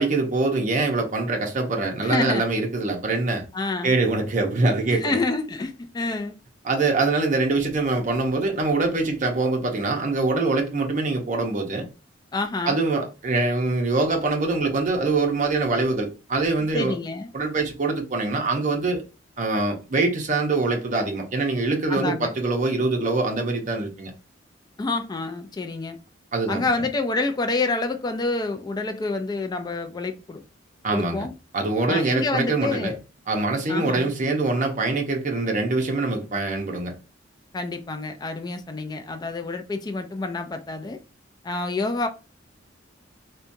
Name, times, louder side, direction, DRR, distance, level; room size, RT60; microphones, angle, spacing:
voice 1, 0.0-3.4 3.8-5.2 6.6-11.9 12.7-16.9 17.3-19.0 19.4-24.1 26.3-26.6 30.8-31.2 31.5-33.0 33.3-36.9, right 3 dB, 40° right, 0.7 m, -24 dB
voice 2, 2.0-2.4 3.5-3.9 4.9-6.4 12.3-12.8 16.7-17.3 21.9-22.3 24.8-26.0 26.5-30.4 30.9-31.3 31.9-33.0 33.7-34.1 37.5-41.0 41.4-42.1, left 3 dB, 20° left, 0.3 m, -28 dB
2.8 x 2.2 x 2.5 m
head